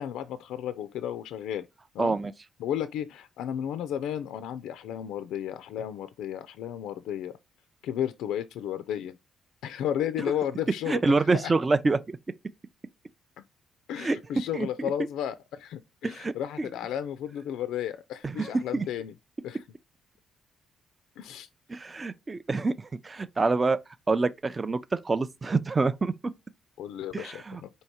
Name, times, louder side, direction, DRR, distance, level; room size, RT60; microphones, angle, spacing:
voice 1, 0.0-1.7 1.9-2.2 2.6-7.3 7.8-9.2 9.6-11.5 13.4-13.5 13.9-19.1 19.4-19.6 21.2-21.5 26.8-27.7, left 10 dB, 85° left, 0.3 m, -33 dB
voice 2, 2.0-2.3 10.9-12.2 14.0-14.2 14.5-14.9 16.0-16.3 18.2-18.8 21.7-23.8 24.1-26.1 27.1-27.6, right 3 dB, 25° right, 0.4 m, -26 dB
4.6 x 2.7 x 4.2 m
cardioid pair, 90°, 0 cm